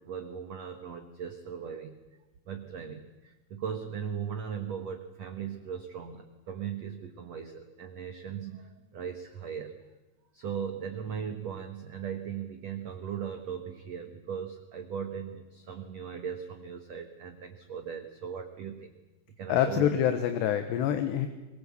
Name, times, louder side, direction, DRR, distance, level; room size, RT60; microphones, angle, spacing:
voice 1, 0.0-2.0 2.5-9.8 10.3-18.9 19.4-19.9, right 7 dB, 75° right, 6 dB, 1.5 m, -38 dB
voice 2, 19.5-21.3, left 10 dB, 75° left, 8 dB, 3.3 m, -26 dB
23.5 x 23.0 x 8.3 m, 1.1 s
omnidirectional pair, 5.2 m